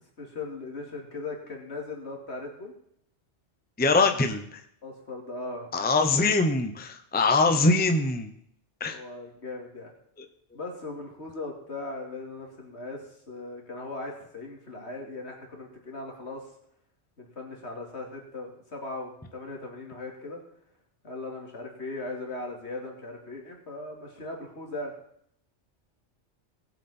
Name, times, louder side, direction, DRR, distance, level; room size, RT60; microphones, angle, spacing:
voice 1, 0.2-2.7 4.8-5.7 8.8-9.9 10.5-16.5 17.2-20.4 21.0-24.9, left 2 dB, 70° left, 0 dB, 2.9 m, -38 dB
voice 2, 3.8-4.6 5.7-8.3 8.8-9.0, left 3 dB, 10° left, 7 dB, 0.7 m, -23 dB
19.0 x 7.7 x 4.3 m, 0.71 s
omnidirectional pair, 1.2 m